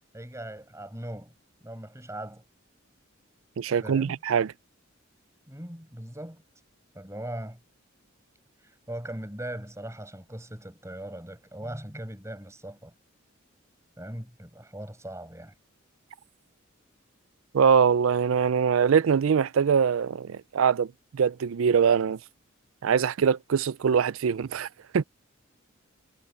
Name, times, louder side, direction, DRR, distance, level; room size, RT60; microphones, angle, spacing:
voice 1, 0.1-1.3 1.6-2.4 3.8-4.2 5.5-6.4 6.9-7.6 8.6-12.9 14.0-15.5, right 1 dB, 15° right, 6.3 m, -39 dB
voice 2, 3.6-4.5 17.5-22.2 22.8-24.7 24.9-25.0, right 7 dB, 75° right, 0.4 m, -23 dB
head